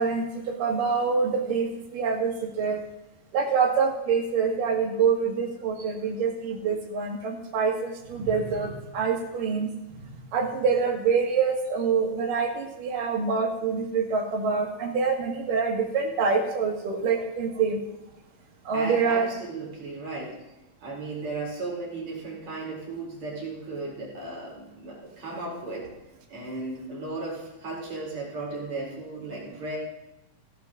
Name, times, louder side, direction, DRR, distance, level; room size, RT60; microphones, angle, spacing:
voice 1, 0.0-2.8 3.3-17.8 18.7-19.3, right 5 dB, 75° right, 1 dB, 3.5 m, -26 dB
voice 2, 18.7-20.4 20.8-25.9 26.3-29.8, right 2 dB, 55° right, -4 dB, 5.3 m, -35 dB
15.5 x 11.5 x 3.9 m, 0.94 s
omnidirectional pair, 3.9 m